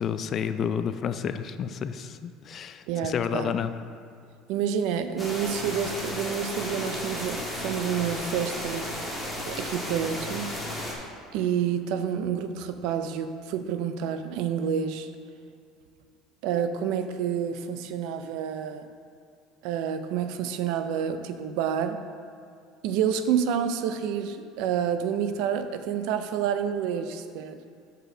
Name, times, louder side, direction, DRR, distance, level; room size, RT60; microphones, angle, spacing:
voice 1, 0.0-3.7, left 7 dB, 40° left, 11 dB, 0.4 m, -30 dB
voice 2, 2.9-3.5 4.5-8.9 9.5-10.5 11.3-15.1 16.4-18.9 19.6-22.0 22.8-27.6, right 8 dB, 70° right, 9 dB, 0.5 m, -28 dB
sound 1, 5.2-10.9, left 1 dB, ahead, 1.7 m, -34 dB
6.1 x 5.5 x 6.1 m, 2.3 s
cardioid pair, 125°, 0 cm